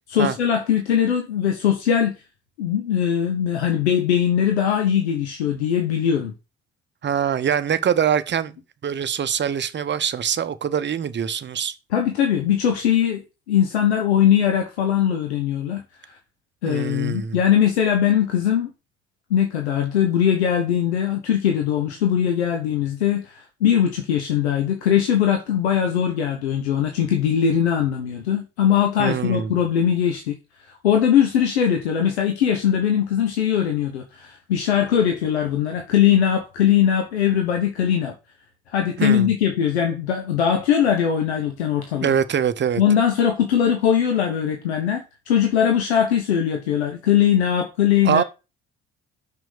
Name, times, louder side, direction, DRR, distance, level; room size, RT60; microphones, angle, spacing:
voice 1, 0.1-2.1 2.6-6.3 11.9-13.2 13.5-15.8 16.6-18.7 19.3-30.3 30.8-38.1 38.7-42.1 42.8-48.2, left 9 dB, 75° left, 1.1 m, -20 dB
voice 2, 7.0-8.6 8.8-11.7 16.7-17.4 29.0-29.5 39.0-39.3 42.0-42.8 48.0-48.2, right 8 dB, 35° right, 0.9 m, -23 dB
6.2 x 6.0 x 6.4 m
figure-of-eight pair, 50°, 33 cm